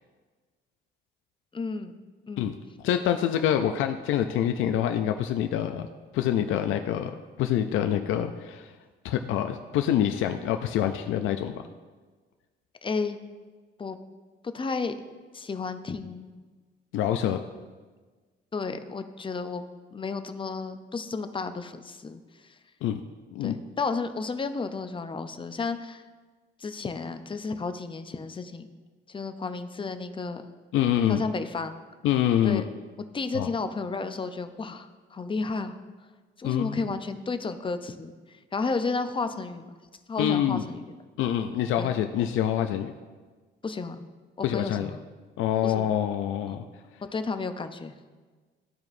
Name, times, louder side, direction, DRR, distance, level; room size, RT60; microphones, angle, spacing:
voice 1, 1.5-2.0 2.3-2.5 12.8-13.2 13.8-14.0 14.5-15.1 15.3-16.3 17.3-17.5 18.5-19.6 19.9-22.2 23.4-26.0 26.6-28.7 29.1-30.4 31.1-31.8 32.4-32.7 33.1-35.7 36.4-38.1 38.5-39.7 40.1-40.9 41.8-41.9 43.6-44.0 44.4-45.0 45.6-45.9 46.5-46.6 47.1-47.9, left 4 dB, 25° left, 9 dB, 0.5 m, -32 dB
voice 2, 2.8-5.9 6.1-7.1 7.4-8.7 9.0-11.5 16.9-17.4 22.8-23.0 23.3-23.6 30.7-31.3 32.0-32.6 33.3-33.5 36.4-36.9 40.2-40.6 41.2-42.9 44.4-44.9 45.4-46.6, left 10 dB, 85° left, 7 dB, 0.4 m, -26 dB
13.5 x 4.7 x 2.6 m, 1.4 s
cardioid pair, 90°, 20 cm